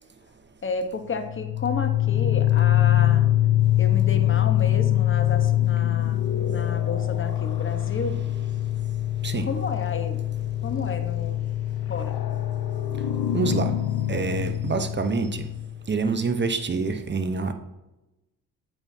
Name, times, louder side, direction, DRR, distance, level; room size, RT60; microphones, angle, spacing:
voice 1, 0.6-3.3 3.8-6.2 6.5-8.2 9.5-10.2 10.6-11.4 11.9-12.2, left 4 dB, 30° left, 7 dB, 1.2 m, -31 dB
sound 1, 1.2-15.8, left 13 dB, 65° left, 0.9 m, -24 dB
voice 2, 13.3-13.7 14.1-15.4 15.9-17.5, right 4 dB, 30° right, 8 dB, 0.9 m, -26 dB
9.1 x 7.9 x 2.8 m, 0.97 s
cardioid pair, 80°, 38 cm